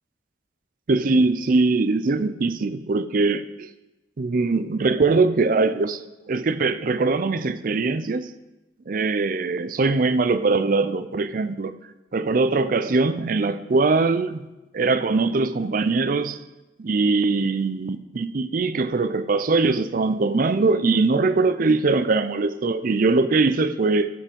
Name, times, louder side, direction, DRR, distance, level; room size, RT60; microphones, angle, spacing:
voice 1, 0.9-3.7 4.2-6.0 6.3-8.3 8.9-11.7 12.1-14.4 14.7-16.4 16.8-24.1, right 3 dB, 50° right, 13 dB, 0.5 m, -21 dB
11.5 x 5.8 x 5.2 m, 1.0 s
head